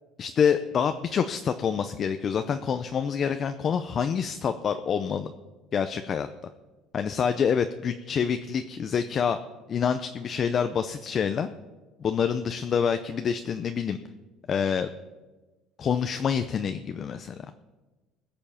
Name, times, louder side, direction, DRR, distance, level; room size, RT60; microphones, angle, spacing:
voice 1, 0.2-5.3 5.7-6.3 6.9-9.4 9.7-11.5 12.0-14.0 14.5-14.9 15.8-17.3, left 7 dB, 35° left, 9 dB, 0.5 m, -27 dB
21.0 x 7.0 x 5.7 m, 1.2 s
cardioid pair, 150°, 0 cm